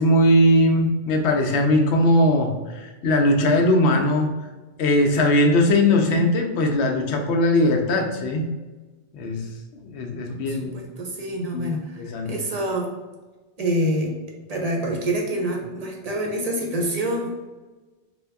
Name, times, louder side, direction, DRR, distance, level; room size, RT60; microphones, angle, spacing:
voice 1, 0.0-4.3 4.8-8.5 9.1-9.5 9.8-10.8 11.5-12.3, left 1 dB, 80° left, 3 dB, 0.9 m, -20 dB
voice 2, 10.3-12.9 13.6-14.1 14.5-17.3, right 1 dB, 45° right, 0 dB, 0.6 m, -26 dB
3.4 x 2.2 x 3.4 m, 1.2 s
omnidirectional pair, 1.1 m